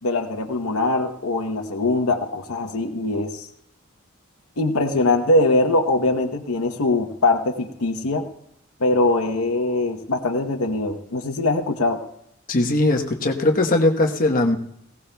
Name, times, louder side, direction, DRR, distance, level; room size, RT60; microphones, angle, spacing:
voice 1, 0.0-3.5 4.6-8.3 8.8-12.0, left 2 dB, 85° left, 5 dB, 1.0 m, -22 dB
voice 2, 12.5-14.6, left 2 dB, 40° left, 3 dB, 1.1 m, -19 dB
19.0 x 17.0 x 2.3 m, 0.76 s
head